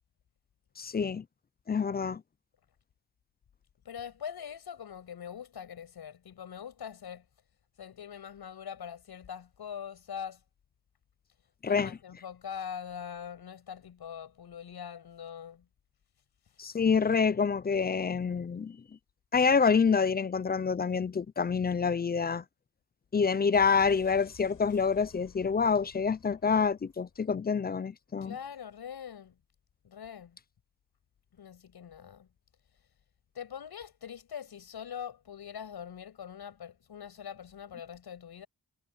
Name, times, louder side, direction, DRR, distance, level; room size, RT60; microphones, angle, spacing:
voice 1, 0.8-1.2 1.7-2.2 11.6-12.0 16.6-18.8 19.3-22.4 23.1-28.4, left 5 dB, 25° left, 0.4 m, -27 dB
voice 2, 3.9-7.2 7.8-10.4 11.7-15.6 28.2-29.4 29.8-30.4 31.3-32.3 33.3-38.5, left 8 dB, 80° left, 7.3 m, -43 dB
sound 1, 23.5-27.3 27.6-27.7, left 7 dB, 60° left, 6.4 m, -55 dB
wide cardioid pair, 165°, 38 cm